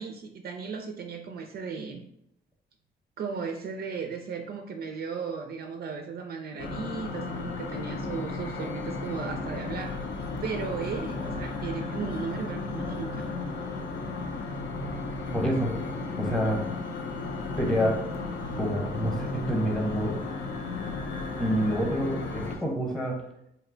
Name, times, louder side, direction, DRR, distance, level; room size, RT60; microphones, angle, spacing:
voice 1, 0.0-2.1 3.2-10.1 10.4-13.3, right 5 dB, 50° right, 4 dB, 0.4 m, -36 dB
sound 1, 6.6-22.6, left 3 dB, 65° left, 0.5 m, -34 dB
voice 2, 15.3-15.7 16.2-16.6 17.6-18.0 18.6-20.2 21.4-23.2, equal, 5° left, 0 dB, 0.8 m, -27 dB
2.8 x 2.1 x 3.7 m, 0.78 s
cardioid pair, 90°, 20 cm